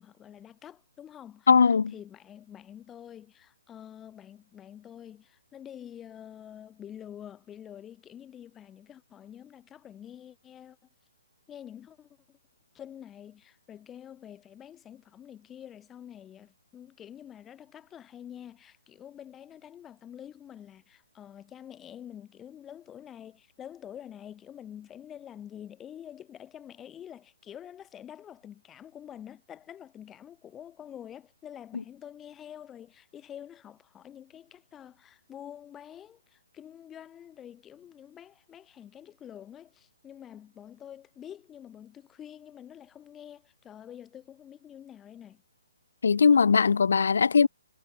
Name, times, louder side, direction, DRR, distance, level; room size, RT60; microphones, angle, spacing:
voice 1, 0.0-1.5 1.9-10.8 11.5-12.4 12.7-45.4, left 10 dB, 15° left, 7.1 m, -47 dB
voice 2, 1.5-1.9 46.0-47.5, left 5 dB, 70° left, 2.4 m, -20 dB
hypercardioid pair, 140°, 0 cm